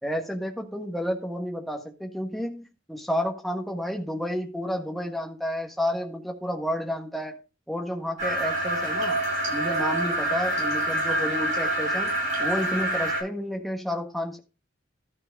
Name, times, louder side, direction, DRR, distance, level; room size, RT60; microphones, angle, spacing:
voice 1, 0.0-7.4 7.7-9.2 9.5-12.1 12.4-14.4, equal, ahead, 1.5 m, -31 dB
sound 1, 8.2-13.2, right 1 dB, 35° right, 7.2 m, -26 dB
13.0 x 4.7 x 5.2 m
head